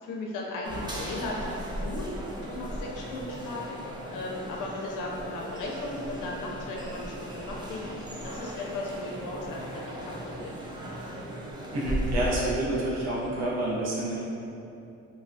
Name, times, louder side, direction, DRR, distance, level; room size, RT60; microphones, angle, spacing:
voice 1, 0.0-2.1 2.5-3.7 4.1-10.6, left 2 dB, 85° left, -2 dB, 0.5 m, -36 dB
sound 1, 0.6-12.3, equal, 15° right, 0.4 m, -37 dB
voice 2, 11.7-14.2, right 1 dB, 60° right, -5 dB, 0.8 m, -28 dB
3.4 x 2.3 x 2.6 m, 2.7 s
cardioid pair, 90°, 30 cm